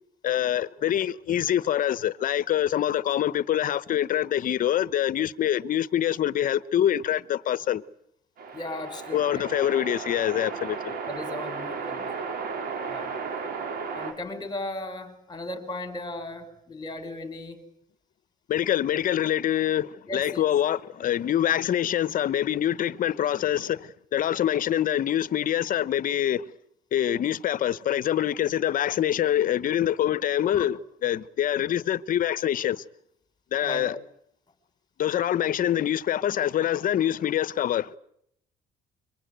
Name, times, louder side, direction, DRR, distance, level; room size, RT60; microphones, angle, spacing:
voice 1, 0.2-7.8 9.1-10.9 18.5-26.5 26.9-32.8 33.5-33.9 35.0-38.0, left 11 dB, 55° left, 1.0 m, -25 dB
sound 1, 8.4-14.1, right 5 dB, 65° right, 5.8 m, -34 dB
voice 2, 8.5-9.5 11.1-12.2 12.8-13.1 13.9-17.7 20.1-20.5 21.1-21.3 30.5-30.7 33.6-33.9, left 2 dB, 25° left, 5.3 m, -36 dB
25.5 x 24.5 x 9.3 m
cardioid pair, 110°, 17 cm